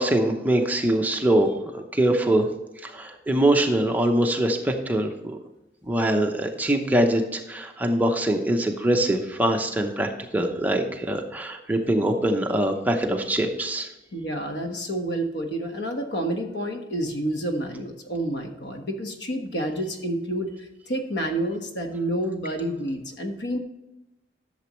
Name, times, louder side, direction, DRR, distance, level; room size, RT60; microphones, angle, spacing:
voice 1, 0.0-2.5 2.8-5.4 5.9-13.9, right 1 dB, 10° right, 3 dB, 0.8 m, -23 dB
voice 2, 14.1-20.5 20.9-23.6, right 1 dB, 80° left, 4 dB, 1.4 m, -29 dB
11.5 x 6.9 x 3.1 m, 0.99 s
head